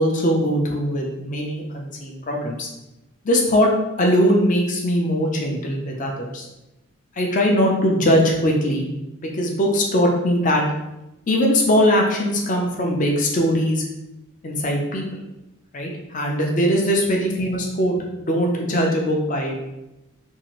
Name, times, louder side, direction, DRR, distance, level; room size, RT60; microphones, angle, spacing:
voice 1, 0.0-2.7 3.2-3.7 4.0-6.5 7.2-8.9 9.2-10.6 11.3-13.8 14.4-15.0 15.7-19.6, equal, 35° left, 0 dB, 0.5 m, -20 dB
2.7 x 2.4 x 3.0 m, 0.94 s
head